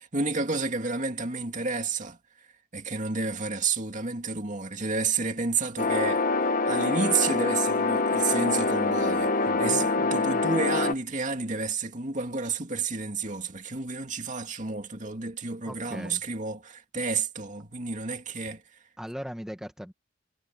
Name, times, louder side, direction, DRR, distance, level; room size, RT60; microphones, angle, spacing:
voice 1, 0.0-2.5 2.7-18.8, right 4 dB, 40° right, 2.4 m, -30 dB
sound 1, 5.8-10.9, left 3 dB, 45° left, 1.1 m, -25 dB
voice 2, 9.4-9.8 15.7-16.2 19.0-19.9, equal, 5° right, 1.4 m, -38 dB
head